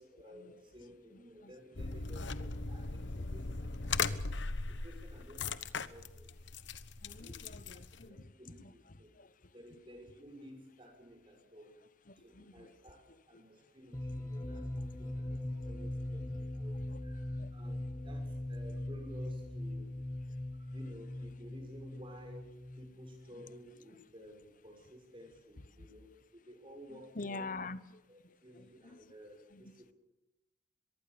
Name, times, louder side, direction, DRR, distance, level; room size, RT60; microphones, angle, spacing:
voice 1, 0.0-4.3 4.7-6.3 7.2-9.1 9.5-11.7 12.2-19.9 20.5-27.5 28.1-29.9, equal, 25° right, 4 dB, 6.5 m, -54 dB
voice 2, 1.1-1.5 7.0-9.5 12.0-12.7 13.1-13.7 15.6-15.7 16.3-16.4 16.9-17.0 17.4-17.5 20.3-20.4 23.3-23.5 25.8-25.9 26.9-29.1 29.5-29.7, left 3 dB, 45° left, 15 dB, 1.1 m, -48 dB
sound 1, 1.8-8.1, left 4 dB, 70° left, 1.1 m, -38 dB
sound 2, 13.9-23.6, left 1 dB, 15° left, 1.3 m, -41 dB
24.0 x 22.5 x 7.0 m, 0.93 s
head